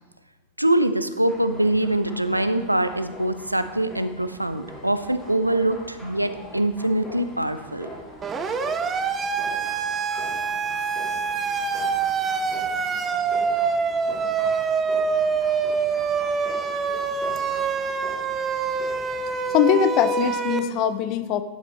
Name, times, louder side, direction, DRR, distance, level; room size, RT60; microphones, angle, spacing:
voice 1, 0.6-7.9, right 1 dB, 85° right, 11 dB, 0.4 m, -23 dB
sound 1, 1.3-19.4, equal, 10° left, 2.3 m, -43 dB
Siren, 8.2-20.6, right 5 dB, 20° right, 0.6 m, -25 dB
voice 2, 19.5-21.4, left 9 dB, 40° left, 11 dB, 0.6 m, -21 dB
11.0 x 7.6 x 3.1 m, 1.3 s
figure-of-eight pair, 90°, 0 cm